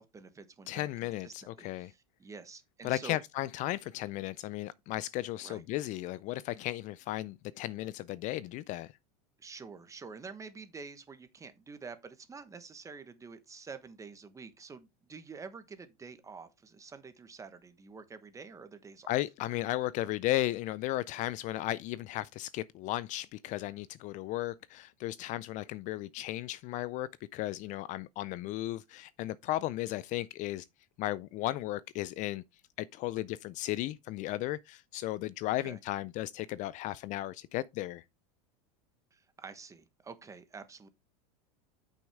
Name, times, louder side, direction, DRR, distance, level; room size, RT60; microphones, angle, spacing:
voice 1, 0.0-0.9 1.2-3.2 5.4-5.6 9.4-19.1 35.6-35.8 39.1-40.9, right 5 dB, 15° right, 1.2 m, -48 dB
voice 2, 0.7-1.9 2.8-8.9 19.1-30.7 31.0-32.4 32.8-38.0, left 15 dB, 40° left, 0.4 m, -35 dB
8.5 x 6.3 x 3.5 m
supercardioid pair, 125°, 19 cm